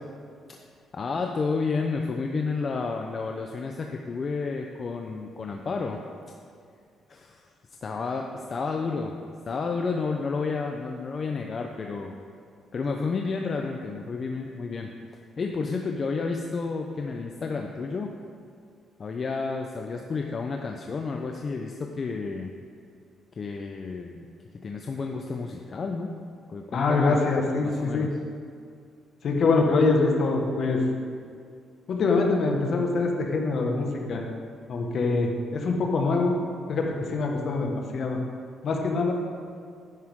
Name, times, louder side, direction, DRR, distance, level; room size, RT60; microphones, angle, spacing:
voice 1, 0.9-6.0 7.1-7.5 7.8-9.1 9.5-12.1 12.7-18.1 19.0-22.5 23.3-24.3 24.6-26.1 26.5-27.2 27.6-28.1, left 4 dB, 45° left, 2 dB, 0.7 m, -31 dB
voice 2, 26.7-28.1 29.2-30.8 31.9-34.2 34.7-36.4 36.7-38.2 38.6-39.1, left 3 dB, 60° left, 1 dB, 1.6 m, -24 dB
11.0 x 9.8 x 3.8 m, 2.3 s
cardioid pair, 90°, 0 cm